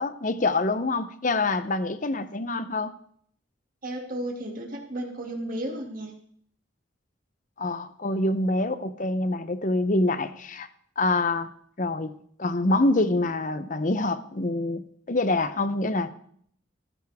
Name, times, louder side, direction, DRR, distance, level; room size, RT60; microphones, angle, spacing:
voice 1, 0.0-2.9 7.6-10.7 11.0-11.5 11.8-12.1 12.4-16.1, left 2 dB, 40° left, 12 dB, 0.8 m, -26 dB
voice 2, 3.8-6.1, right 1 dB, 45° right, 1 dB, 2.4 m, -33 dB
15.0 x 14.5 x 3.6 m, 0.62 s
head